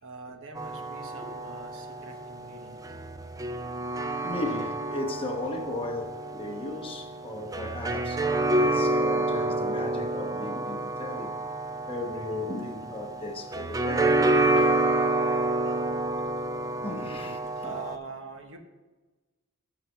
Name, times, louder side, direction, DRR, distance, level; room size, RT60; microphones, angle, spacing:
voice 1, 0.0-2.8 9.4-9.5 14.5-14.9 15.6-16.0 16.7-18.6, right 3 dB, 65° right, 1.1 m, -44 dB
sound 1, 0.6-18.0, right 2 dB, 15° right, 0.4 m, -28 dB
voice 2, 4.2-11.3 11.8-14.2 16.8-17.7, left 2 dB, 25° left, 0.9 m, -36 dB
7.1 x 5.8 x 6.3 m
head